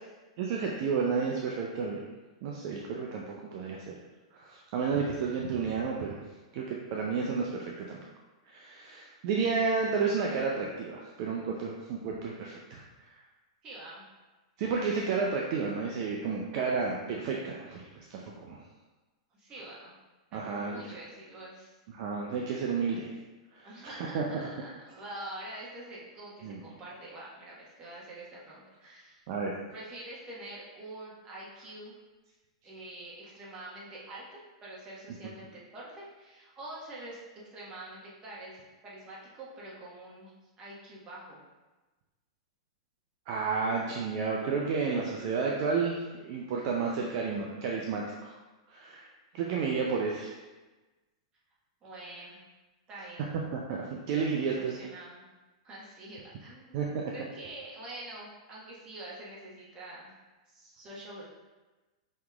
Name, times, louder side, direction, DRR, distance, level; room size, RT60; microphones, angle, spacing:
voice 1, 0.4-2.1 2.4-3.9 4.3-6.2 6.5-8.0 8.5-12.8 14.6-18.6 20.3-20.8 21.9-23.1 23.5-24.2 26.4-26.6 29.3-29.5 43.3-48.3 48.7-49.1 49.3-50.3 53.5-54.8 56.7-57.0, right 5 dB, 55° right, -1 dB, 0.5 m, -31 dB
voice 2, 13.6-14.0 19.4-20.0 20.3-21.7 23.6-29.2 29.7-32.0 32.6-37.2 37.5-40.3 40.6-41.4 51.8-52.4 52.9-53.3 54.4-55.3 55.6-60.1 60.5-61.2, right 1 dB, 30° right, -6 dB, 1.4 m, -45 dB
5.4 x 3.0 x 2.4 m, 1.2 s
hypercardioid pair, 115°, 3 cm